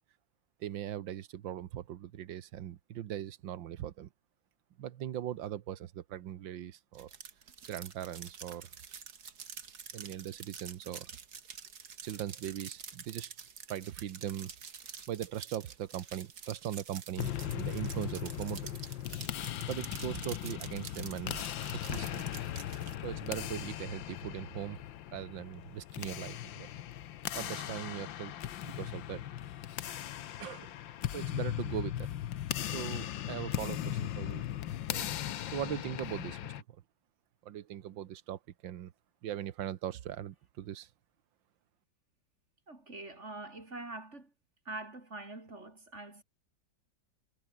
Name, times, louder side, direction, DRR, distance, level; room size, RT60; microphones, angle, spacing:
voice 1, 0.6-4.1 4.8-7.1 7.7-8.7 9.9-11.1 12.0-13.3 13.7-14.5 15.1-18.6 19.7-21.4 21.9-22.2 23.0-24.8 25.1-26.7 27.3-28.3 28.6-29.2 30.4-30.7 31.1-32.1 32.6-34.4 34.9-35.2 35.5-36.8 37.4-38.9 39.2-40.9, right 11 dB, 80° right, 1.7 m, -40 dB
sound 1, 6.9-23.0, right 6 dB, 55° right, 2.3 m, -48 dB
sound 2, 17.2-36.6, left 12 dB, 90° left, 1.7 m, -38 dB
voice 2, 42.7-44.3 44.6-46.2, right 2 dB, 35° right, 4.7 m, -44 dB
omnidirectional pair, 2.0 m